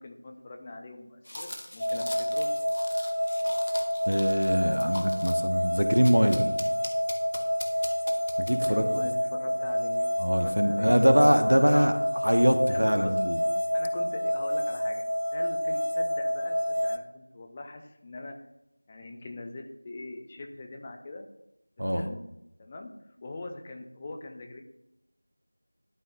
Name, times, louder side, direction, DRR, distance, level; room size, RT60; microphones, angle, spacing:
voice 1, 0.0-2.5 8.6-11.9 12.7-13.1 13.7-18.3 18.9-21.3 21.9-22.2 22.6-22.9 23.2-24.6, left 2 dB, 10° left, 3 dB, 0.4 m, -42 dB
sound 1, 1.2-5.5 6.0-9.0, left 1 dB, 35° left, 0.8 m, -41 dB
sound 2, 1.8-17.0, equal, 80° left, 0.5 m, -28 dB
voice 2, 4.1-6.5 8.4-8.8 10.2-11.9 12.2-13.4 21.8-22.0, equal, 85° right, 8 dB, 1.0 m, -23 dB
11.5 x 5.5 x 2.6 m, 0.86 s
figure-of-eight pair, 175°, 0 cm